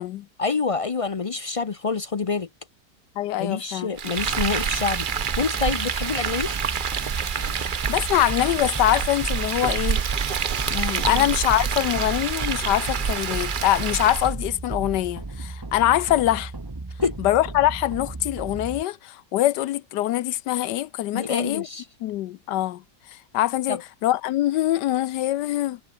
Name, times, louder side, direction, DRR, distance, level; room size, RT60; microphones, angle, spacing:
voice 1, 0.4-2.5 3.3-6.5 11.0-11.3 17.0-17.2 21.1-21.9 23.7-23.8, left 4 dB, 60° left, 0.3 m, -27 dB
voice 2, 3.2-4.1 7.5-10.0 10.7-16.5 17.2-21.7 22.0-22.8 23.3-25.8, left 14 dB, 80° left, 1.3 m, -24 dB
Frying (food), 4.0-14.3, right 7 dB, 45° right, 0.6 m, -27 dB
sound 1, 4.2-18.8, right 2 dB, 15° right, 0.9 m, -34 dB
omnidirectional pair, 1.9 m